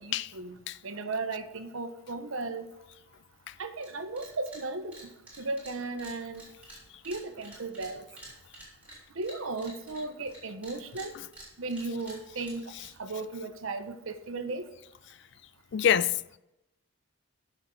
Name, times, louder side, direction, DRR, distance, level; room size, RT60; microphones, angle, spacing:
voice 1, 0.0-0.6 0.8-2.7 3.6-5.0 5.4-6.4 7.1-8.0 9.2-11.1 11.6-12.6 13.0-14.7, right 3 dB, 75° right, 0.9 m, -35 dB
sound 1, 3.8-3.9 4.2-4.6 4.9-10.4 10.6-13.2, right 1 dB, 5° right, 3.3 m, -49 dB
voice 2, 15.7-16.4, left 9 dB, 55° left, 0.3 m, -26 dB
13.5 x 6.0 x 3.8 m
head